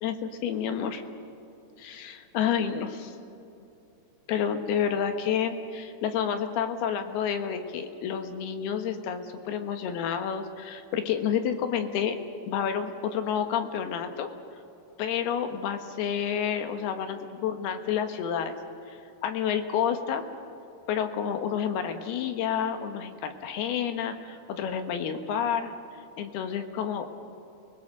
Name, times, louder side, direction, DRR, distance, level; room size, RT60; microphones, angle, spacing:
voice 1, 0.0-1.0 1.8-3.2 4.3-12.2 12.5-14.3 15.0-18.6 18.9-19.0 19.2-20.2 20.9-25.7 26.2-27.1, left 8 dB, 75° left, 6 dB, 3.3 m, -29 dB
29.5 x 20.0 x 6.6 m, 2.8 s
omnidirectional pair, 4.7 m